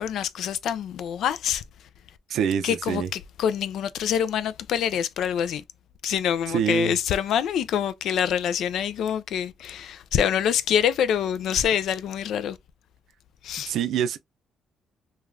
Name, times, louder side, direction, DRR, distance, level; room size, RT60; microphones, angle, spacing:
voice 1, 0.0-1.9 2.6-5.6 6.0-12.6 13.4-13.7, left 9 dB, 70° left, 0.3 m, -26 dB
voice 2, 2.3-3.1 6.5-7.0 13.7-14.2, right 9 dB, 70° right, 0.4 m, -25 dB
3.2 x 2.3 x 2.4 m
cardioid pair, 120°, 0 cm